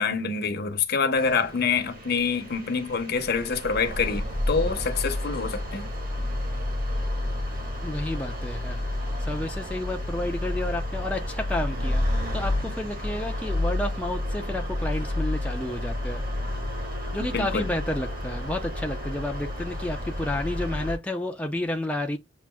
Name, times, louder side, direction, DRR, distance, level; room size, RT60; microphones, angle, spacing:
voice 1, 0.0-5.9 17.2-17.7, left 5 dB, 55° left, 0.8 m, -26 dB
sound 1, 1.1-21.0, left 1 dB, 50° right, 1.7 m, -30 dB
voice 2, 7.8-8.8 9.2-16.2 17.1-22.2, left 1 dB, 5° left, 0.4 m, -31 dB
7.2 x 2.5 x 2.2 m
head